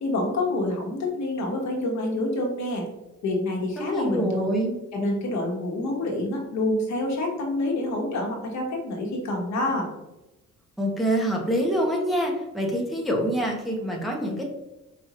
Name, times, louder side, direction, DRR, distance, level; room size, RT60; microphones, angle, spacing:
voice 1, 0.0-2.8 3.2-4.5 4.9-9.9, left 2 dB, 65° left, 0 dB, 1.2 m, -27 dB
voice 2, 3.8-4.8 10.8-14.4, equal, ahead, -2 dB, 1.0 m, -26 dB
4.9 x 2.6 x 2.9 m, 0.98 s
cardioid pair, 90°, 30 cm